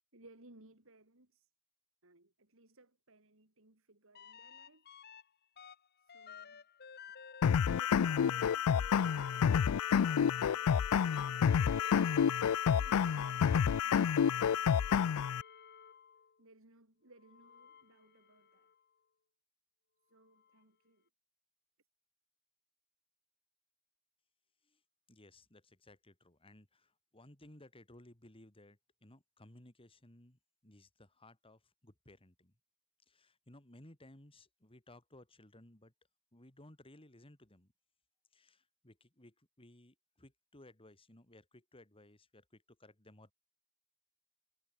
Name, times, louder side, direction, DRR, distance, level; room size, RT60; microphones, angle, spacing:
voice 1, 0.1-1.5 2.0-5.0 6.0-6.6 7.7-9.8 10.5-11.9 12.7-15.3 16.4-18.7 20.1-21.1, right 2 dB, 65° right, 4.2 m, -62 dB
sound 1, 4.1-5.2 5.6-16.3 17.2-18.7 20.5-20.6, left 6 dB, 50° left, 1.5 m, -51 dB
sound 2, 7.4-15.4, left 7 dB, 70° left, 0.4 m, -29 dB
voice 2, 25.1-32.5 33.1-35.9 36.3-37.7 38.3-43.3, left 1 dB, 25° left, 2.9 m, -59 dB
head